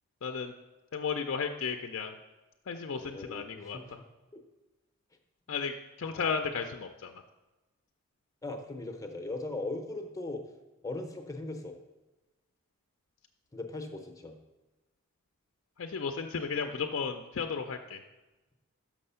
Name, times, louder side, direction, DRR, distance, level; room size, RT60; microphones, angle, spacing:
voice 1, 0.2-0.5 0.9-2.1 2.7-3.8 5.5-7.1 15.8-18.0, left 5 dB, 55° left, 5 dB, 0.4 m, -34 dB
voice 2, 3.0-4.0 4.3-4.4 5.5-5.6 6.1-6.3 8.4-10.5 10.8-11.8 13.5-14.3, left 2 dB, 15° left, 4 dB, 0.6 m, -39 dB
6.4 x 6.0 x 5.5 m, 1.1 s
head